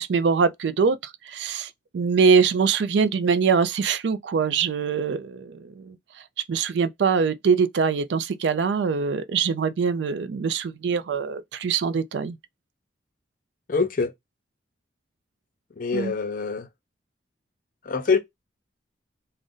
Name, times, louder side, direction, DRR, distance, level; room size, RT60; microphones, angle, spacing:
voice 1, 0.0-6.0 6.5-12.4 15.9-16.1, right 5 dB, 75° right, 0.4 m, -23 dB
voice 2, 13.7-14.1 15.8-16.7 17.8-18.2, left 4 dB, 50° left, 0.6 m, -24 dB
2.5 x 2.1 x 3.6 m
head